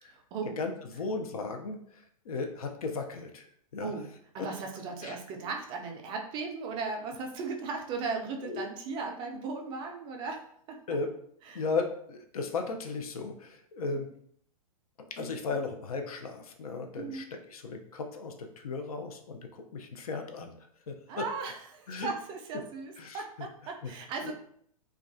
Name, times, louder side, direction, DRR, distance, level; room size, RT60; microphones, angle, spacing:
voice 1, 0.1-0.6 3.8-4.1 4.3-10.4 10.7-10.8 11.5-11.6 17.0-17.3 21.1-24.3, right 4 dB, 25° right, 2 dB, 0.3 m, -37 dB
voice 2, 0.6-3.5 3.7-3.9 4.4-4.5 5.0-5.2 8.4-8.6 10.9-11.1 11.5-14.1 15.1-21.2 21.9-22.1 23.0-23.2 23.8-23.9 24.2-24.3, left 4 dB, 75° left, 5 dB, 0.5 m, -36 dB
2.3 x 2.2 x 2.4 m, 0.66 s
hypercardioid pair, 110°, 19 cm